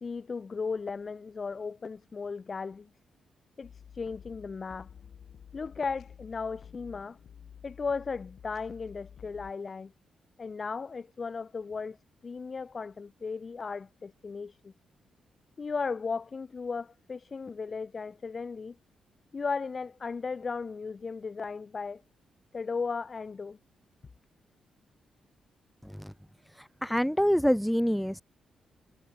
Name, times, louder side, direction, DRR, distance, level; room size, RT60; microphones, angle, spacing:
voice 1, 0.0-2.9 3.6-4.9 5.5-7.2 7.6-9.9 10.4-12.0 12.2-14.7 15.6-18.8 19.3-22.0 22.5-23.6, left 5 dB, 35° left, 1.0 m, -36 dB
sound 1, 3.6-9.5, left 8 dB, 60° left, 1.8 m, -51 dB
voice 2, 26.8-28.2, equal, ahead, 0.4 m, -25 dB
cardioid pair, 110°, 0 cm